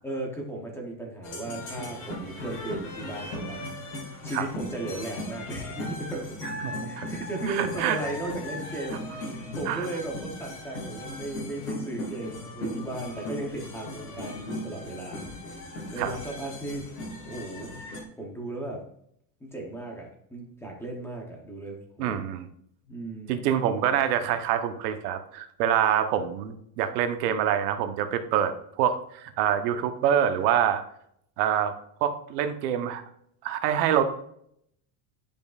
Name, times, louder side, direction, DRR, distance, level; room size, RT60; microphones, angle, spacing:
voice 1, 0.0-3.6 4.2-6.4 6.8-15.6 15.9-16.8 17.2-17.7 18.2-18.8 19.4-22.2 22.8-23.5, right 2 dB, 5° left, 0 dB, 0.7 m, -36 dB
sound 1, 1.2-18.0, left 1 dB, 55° left, 2.1 m, -37 dB
voice 2, 6.6-7.1 7.5-8.0 9.7-9.9 16.0-16.1 22.0-22.5 23.3-30.8 31.4-31.7 32.0-33.0 33.4-34.0, right 9 dB, 80° right, 8 dB, 1.0 m, -26 dB
10.5 x 5.3 x 2.4 m, 0.71 s
cardioid pair, 175°, 48 cm